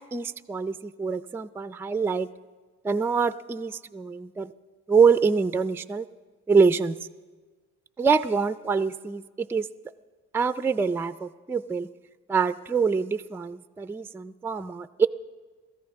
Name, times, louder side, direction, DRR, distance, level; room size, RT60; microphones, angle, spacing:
voice 1, 0.1-2.3 2.8-4.5 4.9-6.1 6.5-7.0 8.0-9.7 10.3-11.9 12.3-15.1, right 5 dB, 10° right, 12 dB, 0.4 m, -25 dB
26.0 x 14.0 x 3.5 m, 1.4 s
cardioid pair, 90°, 30 cm